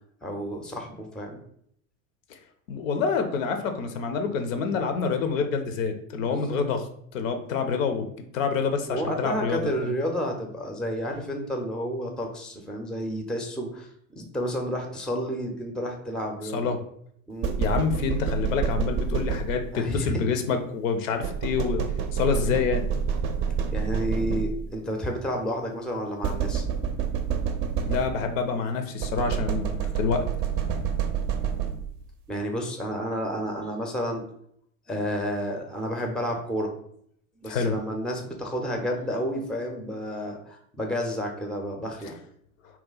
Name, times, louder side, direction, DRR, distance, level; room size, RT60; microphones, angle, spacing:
voice 1, 0.2-1.4 6.5-6.6 8.9-16.7 17.3-17.6 19.7-20.2 23.7-26.6 32.3-34.2 34.9-36.7 37.4-42.1, equal, ahead, 2 dB, 0.5 m, -31 dB
voice 2, 2.7-6.9 7.1-8.1 8.3-9.9 16.5-16.8 17.6-21.8 22.1-22.9 27.8-30.2 37.5-37.7, left 5 dB, 70° left, 7 dB, 0.6 m, -27 dB
sound 1, 17.4-19.9 21.2-24.8 26.2-28.4 29.0-32.1, right 7 dB, 45° right, 0.5 m, -28 dB
2.8 x 2.2 x 3.8 m, 0.69 s
figure-of-eight pair, 70°, 41 cm